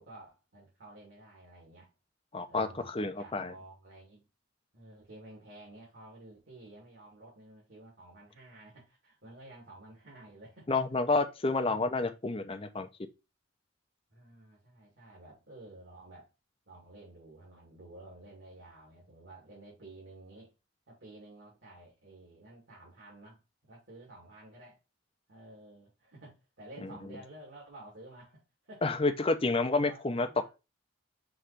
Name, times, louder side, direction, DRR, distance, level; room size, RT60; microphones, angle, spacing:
voice 1, 0.0-1.9 2.5-4.2 4.7-10.7 11.5-11.9 14.1-16.3 16.7-20.5 20.9-23.4 23.7-24.8 25.3-29.0 29.8-30.5, right 2 dB, 65° right, 2.8 m, -52 dB
voice 2, 2.3-2.7 2.9-3.5 10.7-12.9 26.8-26.9 28.8-30.5, left 3 dB, 25° left, 0.6 m, -29 dB
5.9 x 3.2 x 4.9 m
head